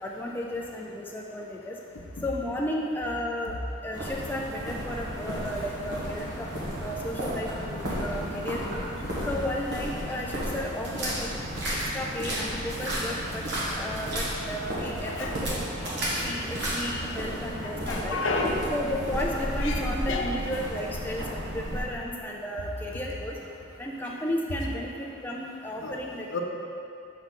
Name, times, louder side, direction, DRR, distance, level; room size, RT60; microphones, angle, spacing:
voice 1, 0.0-1.8 2.2-3.6 3.8-6.5 6.8-8.8 9.3-11.3 11.7-13.4 13.8-15.6 16.2-18.2 18.7-23.4 23.8-26.4, left 1 dB, 10° left, -2 dB, 0.3 m, -33 dB
sound 1, 3.9-21.8, equal, 55° right, 1.4 m, -33 dB
voice 2, 17.6-18.6 19.6-19.7 20.1-20.3 25.8-26.0 26.3-26.4, left 3 dB, 75° left, 1 dB, 0.7 m, -30 dB
6.4 x 4.7 x 4.1 m, 2.6 s
head